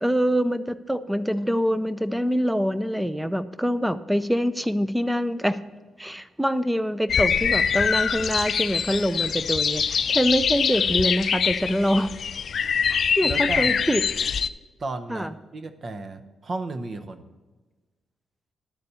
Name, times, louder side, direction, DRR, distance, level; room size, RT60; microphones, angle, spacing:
voice 1, 0.0-5.6 6.0-12.1 12.9-14.0 15.1-15.3, equal, 5° right, 13 dB, 0.4 m, -25 dB
sound 1, 7.1-14.5, left 7 dB, 55° left, 0.3 m, -24 dB
voice 2, 13.2-13.9 14.8-17.2, right 3 dB, 45° right, 7 dB, 0.8 m, -34 dB
11.5 x 4.2 x 6.8 m, 1.2 s
cardioid pair, 90°, 0 cm